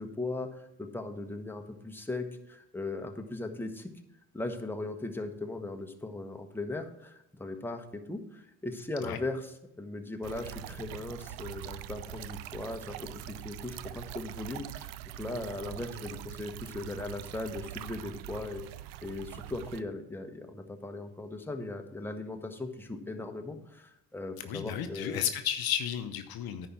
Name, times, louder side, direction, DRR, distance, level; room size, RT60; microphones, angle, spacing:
voice 1, 0.0-3.9 4.3-18.6 19.0-25.3, left 2 dB, 5° left, 4 dB, 1.1 m, -38 dB
sound 1, 10.2-19.8, right 13 dB, 75° right, 0.5 m, -43 dB
voice 2, 24.5-26.7, left 9 dB, 60° left, 9 dB, 0.8 m, -33 dB
9.9 x 4.4 x 6.0 m, 0.80 s
hypercardioid pair, 55°, 42 cm